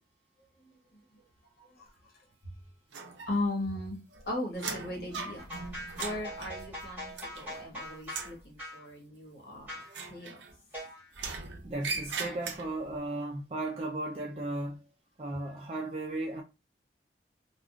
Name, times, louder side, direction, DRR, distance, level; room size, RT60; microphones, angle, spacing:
voice 1, 1.6-1.9 3.3-4.0 4.3-5.5 5.9-10.4 15.5-15.6, left 1 dB, 60° left, 1.3 m, -37 dB
sound 1, 2.9-3.7 4.0-7.7 8.0-8.4 9.9-10.7 11.1-12.9, right 4 dB, 90° right, 0.6 m, -40 dB
sound 2, 5.4-8.3 8.6-8.8 9.7-9.9 10.7-11.1, left 1 dB, 10° right, 1.6 m, -42 dB
voice 2, 11.6-14.8 15.2-16.4, right 2 dB, 35° right, 0.4 m, -35 dB
3.5 x 2.3 x 2.3 m
head